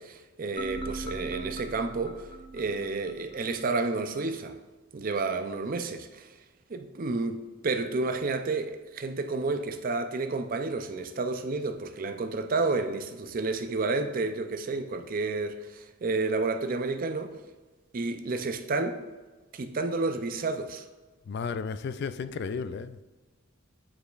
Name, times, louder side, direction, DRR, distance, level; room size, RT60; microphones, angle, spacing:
voice 1, 0.0-2.3 2.5-4.6 4.9-6.3 6.7-17.4 17.9-19.0 19.5-20.8, right 3 dB, 45° right, 0.5 m, -30 dB
sound 1, 0.6-3.6, right 2 dB, 25° left, 0.7 m, -40 dB
voice 2, 21.3-23.0, left 5 dB, 55° left, 0.3 m, -33 dB
9.1 x 4.9 x 2.4 m
head